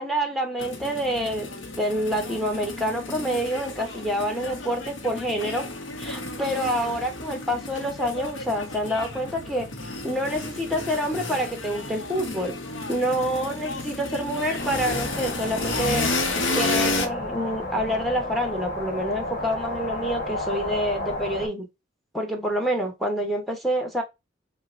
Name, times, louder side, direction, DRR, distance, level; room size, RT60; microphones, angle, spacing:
voice 1, 0.0-5.7 6.0-12.6 12.9-21.7 22.1-24.0, equal, ahead, 0.8 m, -27 dB
sound 1, 0.6-17.1, left 2 dB, 70° left, 0.8 m, -32 dB
sound 2, 14.6-21.5, left 1 dB, 45° left, 1.6 m, -32 dB
5.5 x 2.1 x 2.5 m
head